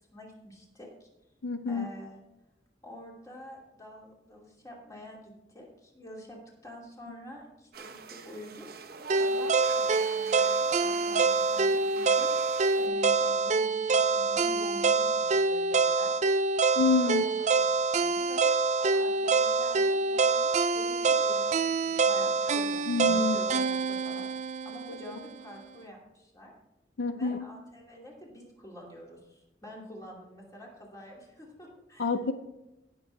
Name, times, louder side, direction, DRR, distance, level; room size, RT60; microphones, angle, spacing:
voice 1, 0.1-1.1 1.7-2.2 2.8-12.3 12.8-16.3 17.0-18.5 18.8-26.5 27.1-32.1, equal, 20° left, -2 dB, 2.7 m, -47 dB
voice 2, 1.4-1.9 16.8-17.2 22.9-23.4 24.9-25.0 27.0-27.5 32.0-32.3, left 4 dB, 85° left, 10 dB, 0.6 m, -27 dB
sound 1, 7.7-12.9, right 5 dB, 60° right, 0.9 m, -46 dB
sound 2, 9.1-25.2, right 4 dB, 40° right, 0.4 m, -26 dB
17.5 x 6.7 x 3.4 m, 0.96 s
head